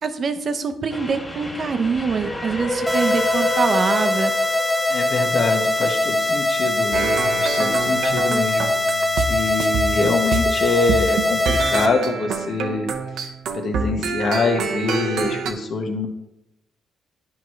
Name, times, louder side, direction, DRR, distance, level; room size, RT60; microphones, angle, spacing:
voice 1, 0.0-4.3, right 5 dB, 45° right, 8 dB, 0.8 m, -24 dB
Train, 0.9-6.2, left 1 dB, 15° left, 2.1 m, -30 dB
sound 1, 2.9-11.9, left 2 dB, 5° right, 0.6 m, -22 dB
voice 2, 4.9-8.7 9.2-12.9 13.2-16.1, left 3 dB, 55° left, 4 dB, 1.3 m, -24 dB
sound 2, 6.9-9.3 9.6-10.5 10.9-15.5, right 5 dB, 80° right, 0.8 m, -26 dB
10.5 x 4.7 x 3.2 m, 0.88 s
cardioid pair, 90°, 0 cm